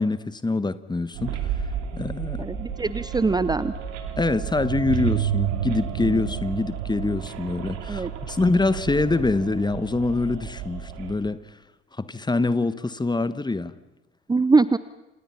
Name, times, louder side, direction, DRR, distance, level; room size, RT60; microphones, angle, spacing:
voice 1, 0.0-1.4 1.9-2.4 4.2-11.4 12.0-13.7, left 3 dB, 15° left, 14 dB, 1.3 m, -25 dB
sound 1, 1.1-11.1, right 9 dB, 65° right, 2.8 m, -31 dB
voice 2, 2.4-3.7 7.9-8.1 14.3-14.8, right 3 dB, 15° right, 15 dB, 0.8 m, -22 dB
29.0 x 26.5 x 5.8 m, 0.99 s
figure-of-eight pair, 50°, 30 cm